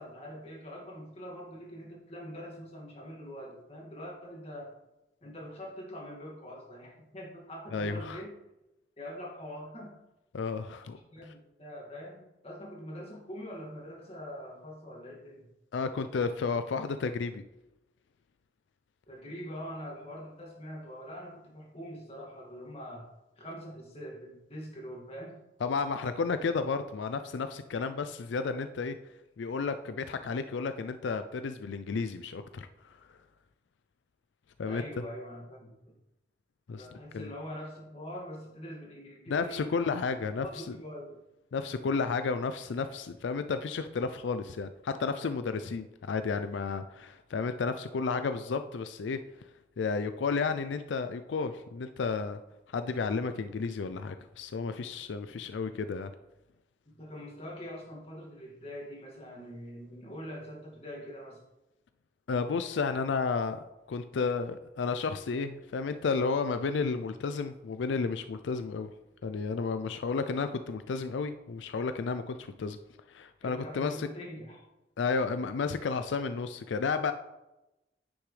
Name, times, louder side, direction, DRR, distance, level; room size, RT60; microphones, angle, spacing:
voice 1, 0.0-4.7 5.2-8.3 9.0-10.0 10.9-15.5 19.1-23.1 23.4-25.4 34.7-35.8 36.8-39.7 40.1-40.2 40.4-41.2 55.3-55.4 56.9-61.4 73.4-74.6, equal, 35° left, -2 dB, 2.1 m, -44 dB
voice 2, 7.7-8.2 10.3-11.0 15.7-17.4 25.6-29.0 29.4-33.0 34.6-34.8 36.7-36.9 37.1-37.3 39.3-40.8 41.5-49.2 49.8-52.4 52.7-56.1 62.3-68.9 69.2-72.8 73.1-74.1 75.0-77.1, left 4 dB, 90° left, 9 dB, 0.4 m, -32 dB
9.7 x 6.2 x 3.3 m, 0.97 s
head